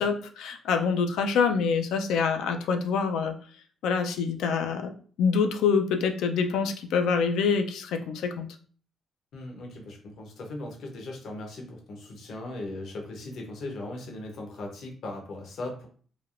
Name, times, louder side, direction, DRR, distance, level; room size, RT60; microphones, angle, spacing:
voice 1, 0.0-3.3 3.8-4.9 5.2-8.5, left 5 dB, 85° left, 6 dB, 0.4 m, -26 dB
voice 2, 9.3-15.9, left 2 dB, 70° left, 2 dB, 0.8 m, -38 dB
3.3 x 2.2 x 2.4 m, 0.44 s
cardioid pair, 90°, 0 cm